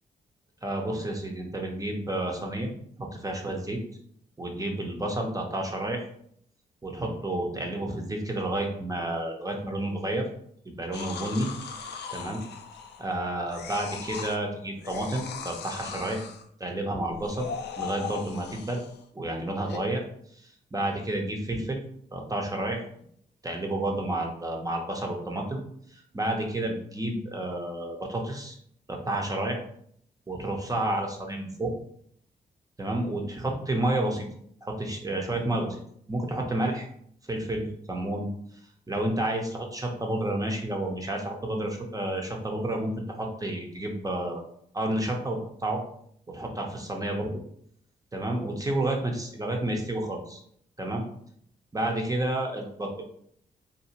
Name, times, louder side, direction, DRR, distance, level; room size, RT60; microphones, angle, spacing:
voice 1, 0.6-2.7 3.0-3.8 4.4-6.1 6.8-10.3 10.7-11.5 12.1-12.4 13.0-16.2 16.6-17.5 17.8-18.8 19.1-20.0 20.3-21.8 22.1-22.8 23.4-25.6 25.9-28.6 28.9-29.6 30.3-31.7 32.8-34.3 34.6-35.8 36.1-36.9 37.3-38.3 38.9-44.4 44.7-45.8 46.3-47.3 48.1-50.4 50.8-51.0 51.7-53.0, right 1 dB, 20° right, 1 dB, 0.8 m, -30 dB
sound 1, 10.9-13.1 13.5-14.4 14.8-16.5 17.1-19.0 19.7-19.8, left 6 dB, 70° left, 0.4 m, -38 dB
2.7 x 2.6 x 2.9 m, 0.66 s
cardioid pair, 60°, 18 cm